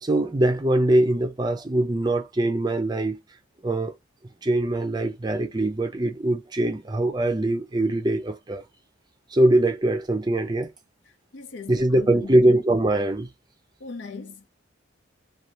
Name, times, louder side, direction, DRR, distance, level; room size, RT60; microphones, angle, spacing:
voice 1, 0.0-3.2 3.6-3.9 4.4-8.6 9.3-10.7 11.7-13.3, right 1 dB, 20° right, 0.5 m, -22 dB
voice 2, 11.1-12.5 13.8-14.5, left 4 dB, 65° left, 0.7 m, -39 dB
2.7 x 2.4 x 3.1 m
head